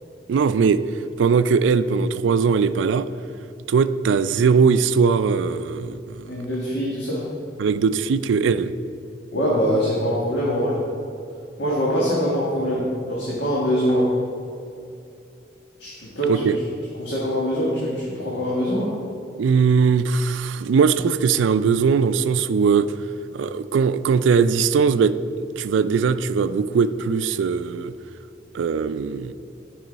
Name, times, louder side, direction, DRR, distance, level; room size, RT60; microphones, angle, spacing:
voice 1, 0.3-0.8 1.2-3.1 3.7-6.3 7.6-8.7 16.3-16.6 19.4-22.9 23.3-25.2 25.6-27.9 28.5-29.3, right 5 dB, 85° right, 14 dB, 0.3 m, -20 dB
voice 2, 6.2-7.3 9.3-10.8 11.6-14.1 15.8-16.5 17.0-19.0, equal, 70° left, -6 dB, 1.6 m, -23 dB
12.5 x 5.5 x 4.0 m, 2.6 s
head